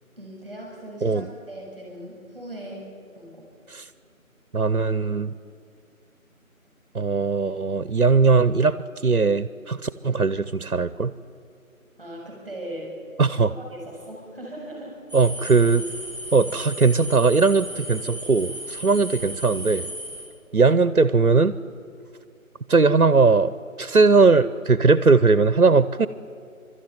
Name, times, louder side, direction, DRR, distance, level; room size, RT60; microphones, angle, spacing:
voice 1, 0.2-3.5 12.0-12.9 13.6-15.0, right 1 dB, ahead, -3 dB, 5.8 m, -39 dB
voice 2, 4.5-5.3 6.9-8.8 9.0-11.1 13.2-13.5 15.1-15.9 16.3-19.9 20.5-21.5 22.7-23.5 23.8-26.1, right 4 dB, 70° right, 14 dB, 0.9 m, -19 dB
sound 1, 15.1-20.2, equal, 20° left, 6.9 m, -35 dB
26.5 x 13.0 x 9.3 m, 2.2 s
figure-of-eight pair, 175°, 43 cm